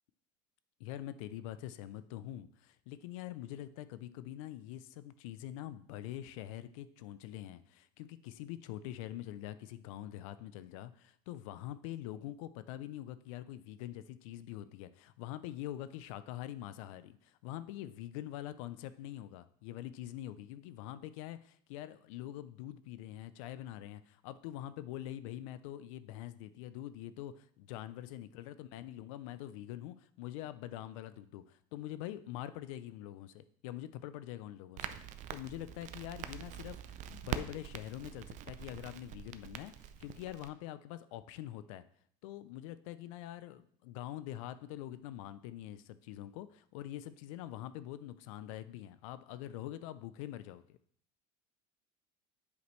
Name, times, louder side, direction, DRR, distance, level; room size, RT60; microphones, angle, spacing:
voice 1, 0.8-35.0 35.3-41.8 42.2-50.8, left 13 dB, 80° left, 14 dB, 0.5 m, -44 dB
Crackle, 34.8-40.5, right 11 dB, 50° right, 0.5 m, -44 dB
8.2 x 5.0 x 3.1 m, 0.65 s
supercardioid pair, 115°, 17 cm